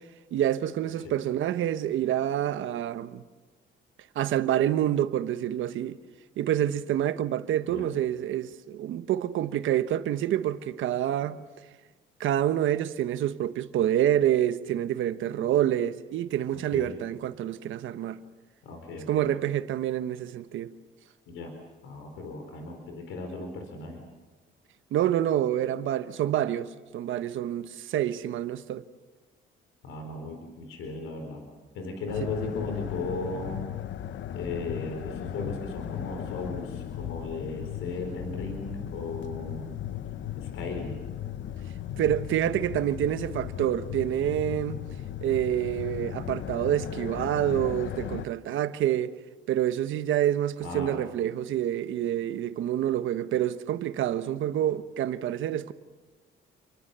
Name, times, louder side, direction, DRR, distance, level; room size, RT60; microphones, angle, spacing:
voice 1, 0.3-3.2 4.1-6.0 6.4-11.4 12.2-18.2 19.1-20.7 24.9-28.8 42.0-44.8 45.2-49.1 49.5-55.7, right 11 dB, 80° right, 1.2 m, -27 dB
voice 2, 16.5-17.0 18.6-19.3 21.3-21.5 21.8-24.1 29.8-31.5 31.7-33.6 34.3-39.7 40.4-41.0 50.6-51.0, left 3 dB, 90° left, 4.4 m, -36 dB
sound 1, 32.1-48.3, left 11 dB, 70° left, 1.0 m, -36 dB
29.5 x 24.0 x 6.9 m
cardioid pair, 90°, 20 cm